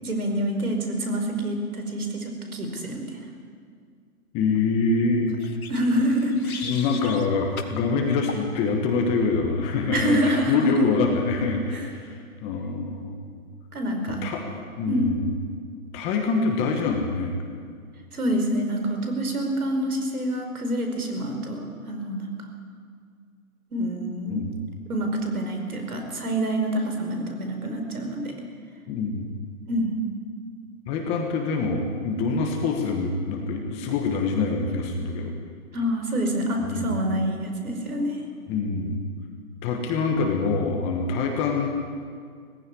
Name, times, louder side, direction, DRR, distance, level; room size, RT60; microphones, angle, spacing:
voice 1, 0.0-3.1 5.7-6.6 7.0-7.1 9.9-10.9 11.7-11.9 13.7-14.2 14.9-15.1 18.1-22.3 23.7-24.5 24.9-28.3 29.7-29.9 35.7-38.2, right 1 dB, 75° right, 4 dB, 5.1 m, -27 dB
voice 2, 4.3-5.4 6.6-13.2 14.1-15.2 15.9-17.3 24.3-24.5 28.9-29.4 30.9-35.3 36.6-36.9 38.5-39.0 39.6-41.7, left 4 dB, 15° left, 2 dB, 1.2 m, -25 dB
sound 1, 5.4-7.3 7.6-7.8 8.3-8.5, left 5 dB, 75° left, 2.6 m, -38 dB
19.0 x 15.5 x 9.7 m, 2.1 s
hypercardioid pair, 160°, 44 cm